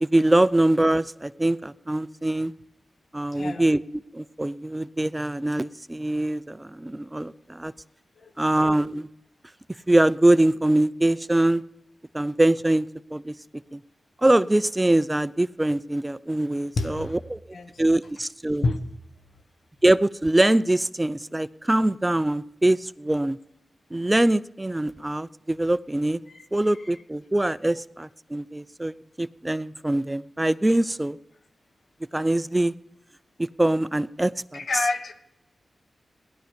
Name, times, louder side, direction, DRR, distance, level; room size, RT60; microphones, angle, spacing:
voice 1, 0.0-2.5 3.1-7.7 8.4-9.1 9.9-11.6 12.1-13.3 13.7-13.8 14.2-17.4 17.8-18.6 19.8-23.4 23.9-26.2 26.5-31.2 32.1-32.7 33.4-34.6, right 1 dB, 20° right, 17 dB, 0.5 m, -23 dB
voice 2, 3.3-3.6 8.2-8.3 16.8-17.2 17.5-17.8 18.6-18.8 26.3-26.5 34.5-35.1, left 3 dB, 70° left, 8 dB, 1.5 m, -27 dB
17.5 x 11.5 x 5.2 m, 0.87 s
cardioid pair, 45°, 0 cm